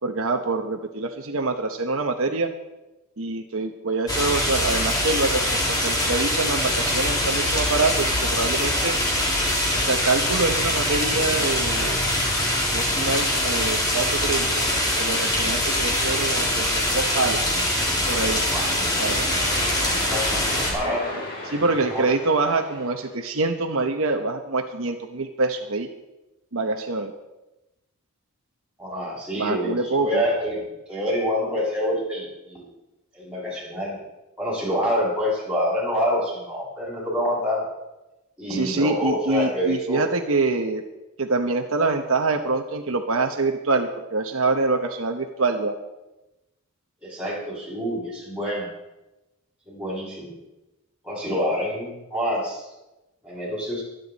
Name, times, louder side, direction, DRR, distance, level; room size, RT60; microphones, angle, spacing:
voice 1, 0.0-2.5 3.2-9.0 9.7-12.1 12.7-14.7 15.0-17.4 18.1-18.5 19.0-19.3 21.4-25.9 26.5-27.1 29.4-30.2 38.5-40.8 41.2-45.7, right 3 dB, 65° right, 4 dB, 1.0 m, -25 dB
sound 1, 4.1-20.7, left 1 dB, 15° left, 2.4 m, -23 dB
sound 2, 17.7-23.1, left 1 dB, 45° left, 4.3 m, -35 dB
voice 2, 18.5-19.0 19.9-21.1 21.5-21.6 21.9-22.0 28.8-29.7 30.0-30.6 30.9-32.7 33.1-34.0 34.4-37.6 38.4-40.0 47.0-48.7 49.6-50.3 51.0-52.6 53.2-53.8, equal, 5° right, -7 dB, 6.7 m, -27 dB
24.0 x 9.4 x 4.1 m, 1.0 s
head